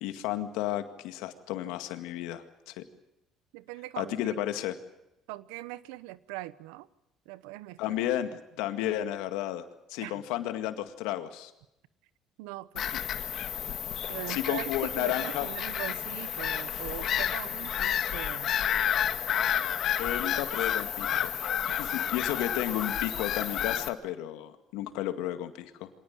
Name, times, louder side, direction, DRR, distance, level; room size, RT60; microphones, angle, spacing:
voice 1, 0.0-2.8 4.0-4.8 7.8-11.5 14.3-15.5 20.0-21.3 21.8-25.9, left 12 dB, 80° left, 8 dB, 2.0 m, -33 dB
voice 2, 3.5-4.4 5.3-6.9 7.3-8.0 10.0-10.2 12.4-12.9 14.1-18.5, right 17 dB, 85° right, 17 dB, 0.9 m, -41 dB
Bird vocalization bird call bird song / Gull seagull, 12.8-23.9, left 10 dB, 60° left, 1.6 m, -30 dB
25.5 x 18.5 x 8.9 m, 0.88 s
supercardioid pair, 75°, 0 cm